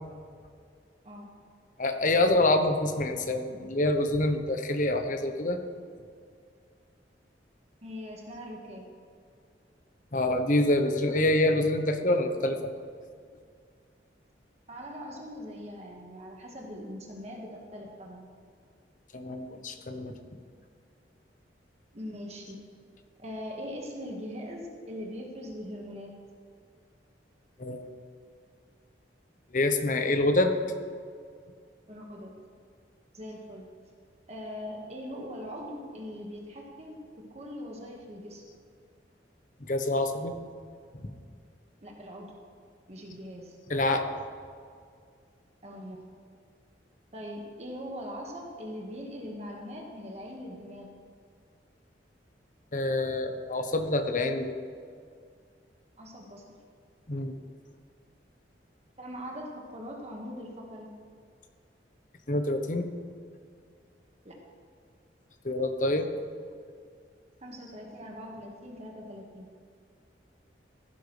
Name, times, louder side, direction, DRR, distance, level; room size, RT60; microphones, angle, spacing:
voice 1, 1.8-5.6 10.1-12.7 19.1-20.1 27.6-27.9 29.5-30.5 39.7-40.3 40.9-41.1 43.7-44.0 52.7-54.5 57.1-57.3 62.3-62.9 65.4-66.1, left 2 dB, 45° left, 6 dB, 0.9 m, -26 dB
voice 2, 7.8-8.9 14.7-18.3 21.9-22.6 23.2-26.1 31.9-32.4 33.1-33.6 34.3-38.4 41.8-42.3 42.9-43.6 45.6-46.0 47.1-50.9 56.0-56.5 59.0-60.9 64.2-64.4 67.4-69.5, equal, 35° right, -1 dB, 1.7 m, -41 dB
16.0 x 10.5 x 3.3 m, 2.2 s
head